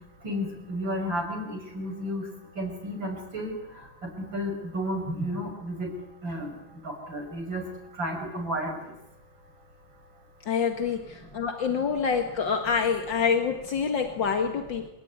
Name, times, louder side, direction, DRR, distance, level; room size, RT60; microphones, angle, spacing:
voice 1, 0.2-1.5 1.7-2.2 2.6-3.5 4.0-5.9 6.2-6.5 6.8-7.6 8.0-8.7, equal, 75° right, 3 dB, 6.7 m, -32 dB
voice 2, 10.5-14.9, left 6 dB, 70° left, 5 dB, 2.4 m, -26 dB
27.0 x 17.5 x 9.6 m, 0.92 s
omnidirectional pair, 2.1 m